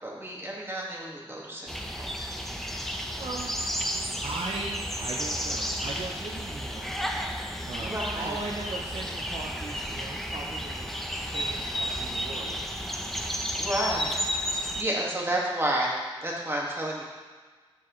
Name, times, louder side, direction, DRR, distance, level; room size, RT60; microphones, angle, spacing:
voice 1, 0.0-1.7 2.0-2.1 7.8-8.4 13.6-14.1 14.5-16.0 16.2-17.0, right 1 dB, 25° right, -3 dB, 1.7 m, -30 dB
sound 1, 1.7-14.8, equal, 5° left, 0.6 m, -32 dB
voice 2, 3.2-3.5 4.2-6.9 7.7-10.9 11.3-12.7, right 3 dB, 85° right, -2 dB, 0.7 m, -38 dB
11.5 x 4.6 x 3.1 m, 1.4 s
wide cardioid pair, 70°, 10 cm